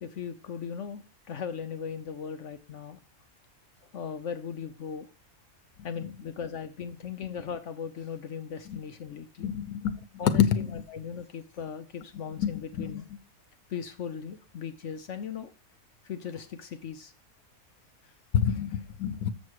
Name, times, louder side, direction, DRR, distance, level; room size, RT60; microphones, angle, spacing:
voice 1, 0.0-1.0 1.3-3.0 3.9-5.1 5.8-9.5 10.2-13.1 13.7-15.5 16.0-17.1, left 7 dB, 65° left, 1.0 m, -38 dB
voice 2, 9.4-10.0 10.2-10.7 12.4-12.5 12.8-13.0 18.3-19.3, left 8 dB, 90° left, 1.3 m, -26 dB
7.1 x 6.5 x 4.6 m
omnidirectional pair, 1.5 m